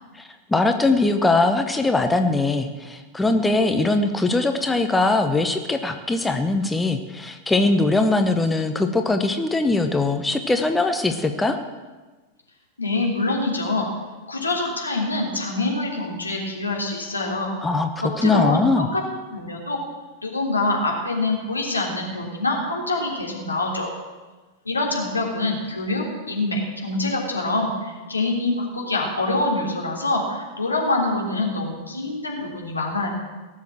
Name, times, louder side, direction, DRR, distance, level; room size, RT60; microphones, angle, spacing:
voice 1, 0.5-11.6 17.6-17.9 18.2-18.9, left 2 dB, 10° left, 6 dB, 1.0 m, -21 dB
voice 2, 12.8-13.9 14.3-17.5 18.0-19.0 19.3-19.8 20.2-23.9 24.6-33.1, left 2 dB, 80° left, -1 dB, 3.3 m, -25 dB
17.5 x 7.3 x 7.6 m, 1.3 s
figure-of-eight pair, 90°, 0 cm